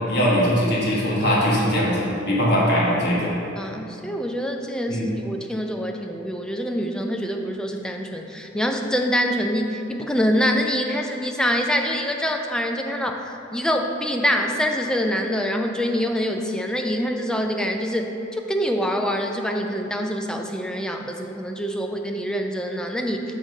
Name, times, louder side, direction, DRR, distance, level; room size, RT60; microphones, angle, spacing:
voice 1, 0.1-3.4 4.9-5.1, equal, 55° left, -5 dB, 1.3 m, -21 dB
voice 2, 3.6-13.2 13.5-23.4, equal, 5° left, 3 dB, 0.3 m, -25 dB
6.4 x 3.8 x 5.1 m, 2.8 s
head